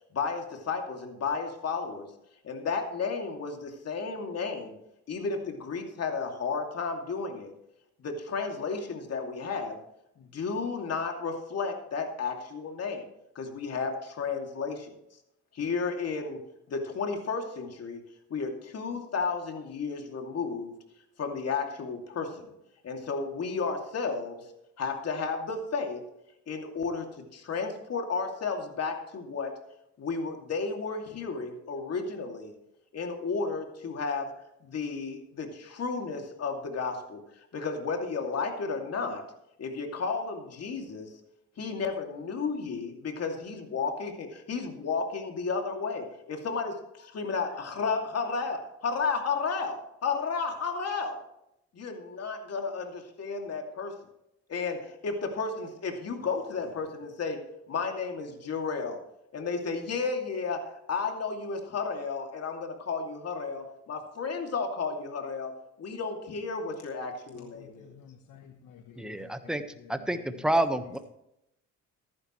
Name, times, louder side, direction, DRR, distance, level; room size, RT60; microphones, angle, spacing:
voice 1, 0.1-2.1 2.4-4.8 5.1-7.5 8.0-9.8 10.2-13.0 13.3-14.9 15.5-16.4 16.7-18.0 18.3-20.7 21.2-22.5 22.8-24.5 24.8-26.0 26.5-27.1 27.3-29.5 30.0-32.5 32.9-34.3 34.6-37.2 37.5-39.2 39.6-41.1 41.6-51.2 51.7-53.9 54.5-57.4 57.7-59.0 59.3-65.5 65.8-67.9, left 4 dB, 55° left, 3 dB, 2.6 m, -33 dB
voice 2, 67.6-69.6, left 8 dB, 80° left, 6 dB, 1.1 m, -52 dB
voice 3, 69.0-69.6 70.1-70.2 70.4-71.0, right 1 dB, ahead, 8 dB, 1.2 m, -27 dB
14.5 x 11.5 x 3.2 m, 0.82 s
cardioid pair, 90°, 30 cm